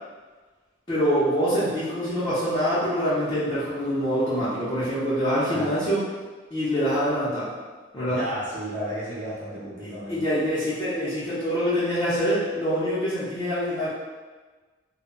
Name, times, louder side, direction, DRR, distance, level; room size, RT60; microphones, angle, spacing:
voice 1, 0.9-6.0 6.5-7.5 7.9-8.2 9.8-13.9, equal, 25° left, -13 dB, 0.7 m, -25 dB
voice 2, 5.4-5.9 8.1-10.2, equal, 40° right, -8 dB, 1.0 m, -33 dB
2.2 x 2.1 x 3.8 m, 1.4 s
head